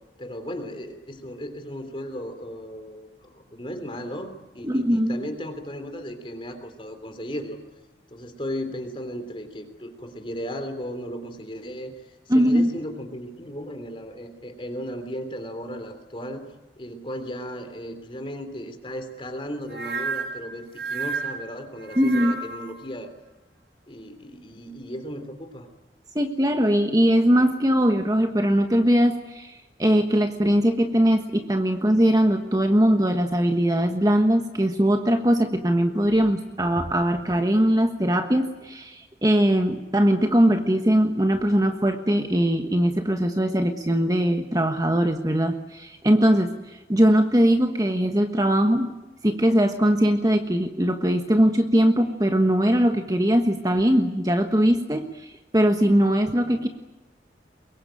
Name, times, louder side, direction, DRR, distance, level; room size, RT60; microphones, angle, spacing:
voice 1, 0.2-7.6 8.1-16.5 16.8-23.1 23.9-25.7, equal, 30° left, 7 dB, 3.4 m, -36 dB
voice 2, 4.6-5.2 12.3-12.7 22.0-22.4 26.1-46.6 46.9-48.9 49.2-55.1 55.5-56.7, equal, 20° right, 5 dB, 1.4 m, -21 dB
sound 1, 19.7-22.8, right 4 dB, 70° right, 5.7 m, -32 dB
24.0 x 22.5 x 9.1 m, 1.0 s
head